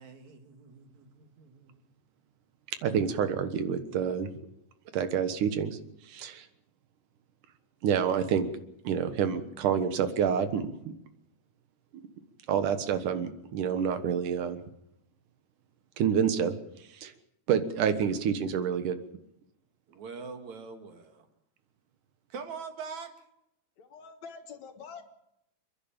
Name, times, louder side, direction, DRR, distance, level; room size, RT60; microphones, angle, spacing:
voice 1, 0.0-1.8 19.9-21.3 22.3-23.1, right 5 dB, 65° right, 6 dB, 3.3 m, -43 dB
voice 2, 2.8-4.3 4.9-5.8 6.1-6.5 7.8-8.5 8.8-10.7 12.5-14.6 16.0-16.5 17.0-17.1 17.5-19.0, right 7 dB, 85° right, 10 dB, 2.9 m, -28 dB
voice 3, 23.8-25.0, left 5 dB, 65° left, 5 dB, 2.9 m, -46 dB
29.0 x 10.5 x 8.9 m, 0.81 s
omnidirectional pair, 3.6 m